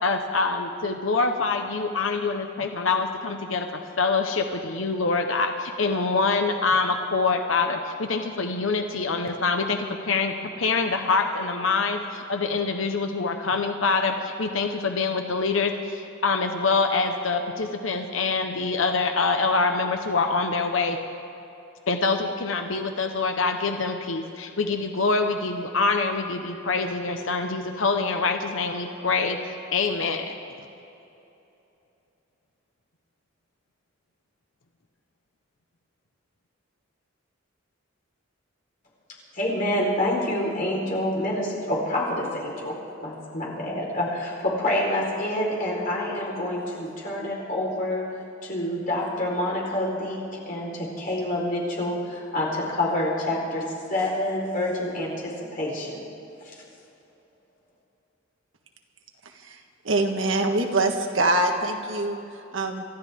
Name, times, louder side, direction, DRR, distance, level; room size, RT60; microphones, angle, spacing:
voice 1, 0.0-3.7 4.0-21.0 21.9-30.3, left 4 dB, 80° left, 5 dB, 1.0 m, -25 dB
voice 2, 39.3-48.0 48.4-53.6 53.9-56.0, left 1 dB, 45° left, -4 dB, 4.5 m, -27 dB
voice 3, 59.8-62.8, right 2 dB, 75° right, 3 dB, 1.6 m, -24 dB
28.0 x 13.5 x 3.7 m, 2.9 s
head